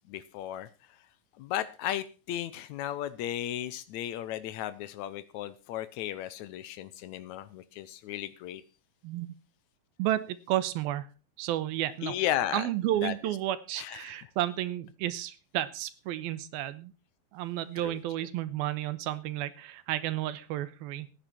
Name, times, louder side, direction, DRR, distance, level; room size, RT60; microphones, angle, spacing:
voice 1, 0.1-0.7 1.4-8.6 12.0-12.7 13.0-13.1 13.8-14.2 17.8-18.0, left 12 dB, 90° left, 14 dB, 1.6 m, -35 dB
voice 2, 9.0-9.3 10.0-11.1 11.4-12.2 12.5-16.9 17.3-21.1, right 13 dB, 80° right, 15 dB, 2.7 m, -32 dB
15.5 x 10.0 x 4.3 m, 0.34 s
omnidirectional pair, 4.4 m